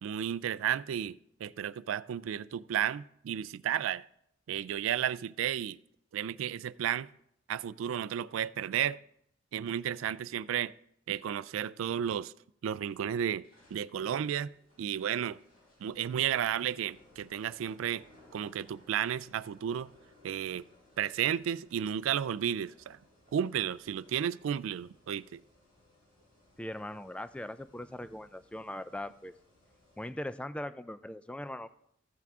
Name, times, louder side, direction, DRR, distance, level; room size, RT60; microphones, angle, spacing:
voice 1, 0.0-4.1 4.5-5.8 6.1-7.1 7.5-9.0 9.5-10.7 11.1-12.3 12.6-13.4 13.7-14.5 14.8-15.4 15.8-18.0 18.3-19.9 20.2-20.6 21.0-23.0 23.3-25.4, right 9 dB, 85° right, 0.3 m, -33 dB
sound 1, 12.7-30.1, left 1 dB, 45° left, 4.1 m, -63 dB
voice 2, 26.6-29.3 30.0-31.7, left 1 dB, 5° left, 0.3 m, -40 dB
15.0 x 5.9 x 3.6 m
head